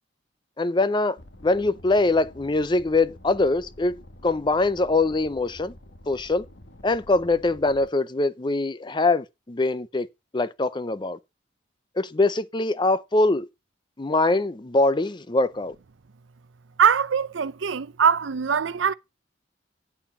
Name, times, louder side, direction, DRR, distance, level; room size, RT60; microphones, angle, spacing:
voice 1, 0.6-1.2 1.4-5.7 6.1-6.4 6.8-10.1 10.3-11.2 12.0-13.5 14.0-15.7, left 2 dB, 25° left, 0.5 m, -23 dB
sound 1, 1.2-7.9, left 1 dB, 70° left, 1.3 m, -48 dB
voice 2, 16.8-18.9, right 7 dB, 90° right, 0.6 m, -22 dB
9.1 x 7.3 x 5.1 m
head